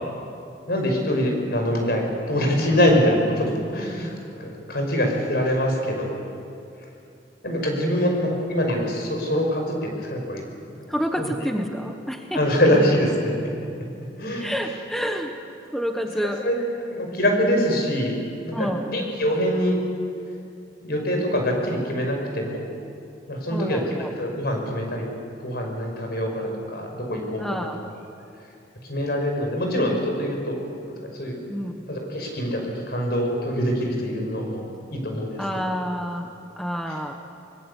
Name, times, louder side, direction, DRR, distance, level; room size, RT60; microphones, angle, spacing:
voice 1, 0.7-4.1 4.4-6.1 7.4-10.5 11.2-11.5 12.3-13.5 14.2-14.7 16.2-16.6 16.8-18.1 18.4-19.8 20.8-22.6 23.3-25.1 25.4-27.7 28.8-30.6 31.0-31.4 31.9-35.6 36.9-37.0, equal, 60° left, 2 dB, 5.9 m, -24 dB
voice 2, 10.9-12.4 14.4-15.3 15.7-16.4 18.5-19.0 23.5-24.1 27.4-27.8 31.5-31.7 35.4-36.3 36.6-37.1, equal, ahead, 4 dB, 1.2 m, -28 dB
24.5 x 22.0 x 8.4 m, 2.6 s
head